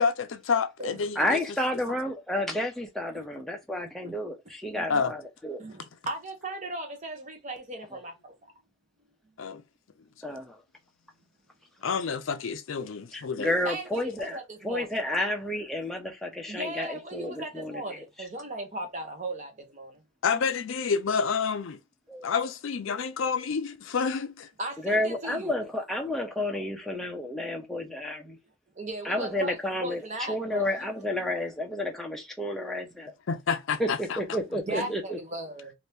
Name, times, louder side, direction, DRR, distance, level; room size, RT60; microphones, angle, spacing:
voice 1, 0.0-1.4 4.9-5.1 9.4-9.6 11.8-13.5 20.2-21.8 22.2-24.5 33.3-34.2, left 5 dB, 60° left, 0.4 m, -28 dB
voice 2, 1.2-5.6 10.2-10.6 13.1-14.4 14.6-18.0 22.1-22.3 24.8-28.4 29.0-30.0 30.3-33.1 33.8-35.2, left 1 dB, ahead, 0.6 m, -31 dB
voice 3, 5.6-8.4 13.6-15.0 16.5-20.0 24.6-25.5 28.7-30.9 34.5-35.7, right 2 dB, 35° right, 0.8 m, -37 dB
2.9 x 2.6 x 3.2 m
head